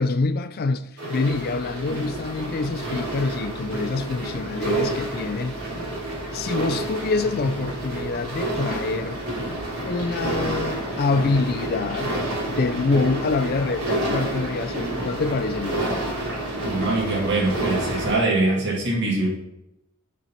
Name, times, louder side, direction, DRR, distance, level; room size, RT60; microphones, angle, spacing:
voice 1, 0.0-5.6 6.3-9.2 9.9-12.2 12.4-15.8, left 3 dB, 45° left, 0.4 m, -26 dB
sound 1, 1.0-18.1, right 1 dB, 85° right, 2.7 m, -29 dB
voice 2, 16.6-19.3, right 2 dB, 50° right, 2.0 m, -23 dB
11.0 x 4.5 x 4.2 m
head